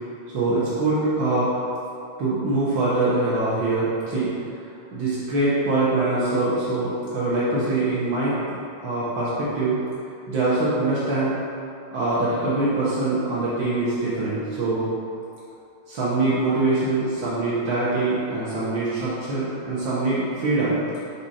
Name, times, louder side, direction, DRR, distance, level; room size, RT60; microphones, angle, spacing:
voice 1, 0.3-1.5 2.2-4.3 4.9-8.3 8.8-9.8 10.3-11.4 11.9-14.9 15.9-20.8, right 2 dB, 80° right, -9 dB, 1.0 m, -23 dB
5.9 x 4.9 x 4.2 m, 2.6 s
omnidirectional pair, 3.7 m